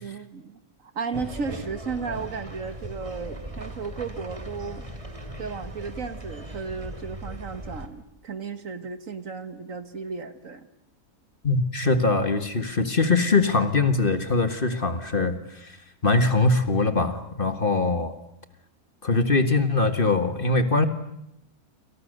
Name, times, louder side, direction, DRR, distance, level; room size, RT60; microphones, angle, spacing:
voice 1, 0.0-4.9 5.4-10.7, right 5 dB, 60° right, 10 dB, 1.9 m, -34 dB
sound 1, 1.1-7.9, right 1 dB, 20° right, 2.8 m, -38 dB
voice 2, 11.4-15.8 16.0-18.1 19.0-20.9, left 3 dB, 35° left, 9 dB, 1.8 m, -22 dB
28.5 x 27.5 x 6.7 m, 0.79 s
omnidirectional pair, 1.6 m